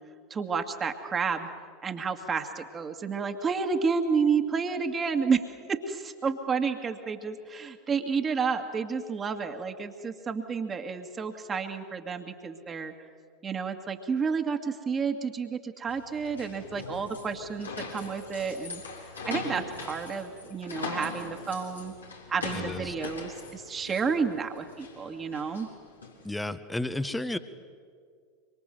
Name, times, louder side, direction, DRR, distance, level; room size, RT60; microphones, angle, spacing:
voice 1, 0.3-1.5 1.8-5.4 5.7-12.9 13.4-18.8 19.2-21.9 22.3-25.7, right 5 dB, 25° right, 5 dB, 2.2 m, -30 dB
sound 1, 15.9-26.3, left 4 dB, 80° left, 4.1 m, -41 dB
voice 2, 22.5-22.9 26.2-27.4, left 1 dB, 5° left, 12 dB, 1.4 m, -32 dB
25.0 x 24.5 x 7.9 m, 2.1 s
figure-of-eight pair, 80°, 0 cm